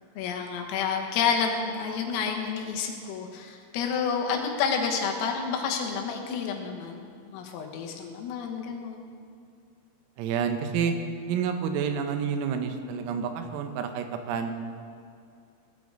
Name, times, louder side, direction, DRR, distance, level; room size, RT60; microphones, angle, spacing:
voice 1, 0.2-9.1, left 6 dB, 85° left, 2 dB, 3.9 m, -29 dB
voice 2, 10.2-11.0 11.3-14.5, right 7 dB, 90° right, 6 dB, 3.7 m, -29 dB
18.5 x 12.5 x 3.9 m, 2.5 s
omnidirectional pair, 5.9 m